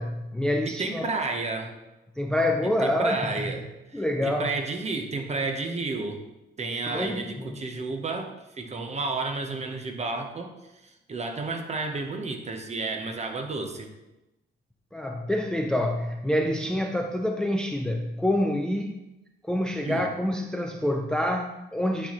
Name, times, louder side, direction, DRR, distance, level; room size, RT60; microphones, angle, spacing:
voice 1, 0.0-1.1 2.2-3.3 3.9-4.5 6.9-7.6 14.9-19.0 19.4-22.1, left 1 dB, 5° left, 4 dB, 0.4 m, -27 dB
voice 2, 0.7-1.7 2.8-6.2 6.6-13.9 19.8-20.1, right 3 dB, 35° right, 4 dB, 0.9 m, -32 dB
8.9 x 4.2 x 3.0 m, 0.98 s
cardioid pair, 90°, 20 cm